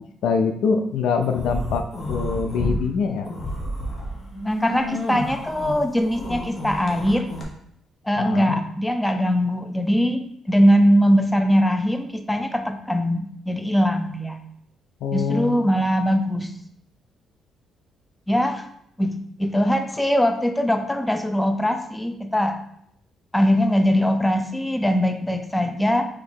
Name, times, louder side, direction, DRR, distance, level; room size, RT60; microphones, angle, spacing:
voice 1, 0.2-3.3 8.2-8.6 15.0-15.6, left 5 dB, 80° left, 6 dB, 0.4 m, -24 dB
sound 1, 1.2-2.8 3.2-7.4, left 1 dB, 45° left, 1.1 m, -30 dB
voice 2, 4.4-7.3 8.0-14.4 15.1-16.5 18.3-18.7 19.0-22.6 23.3-26.1, equal, 10° left, 6 dB, 0.5 m, -21 dB
3.8 x 2.8 x 4.3 m, 0.69 s
cardioid pair, 90°, 0 cm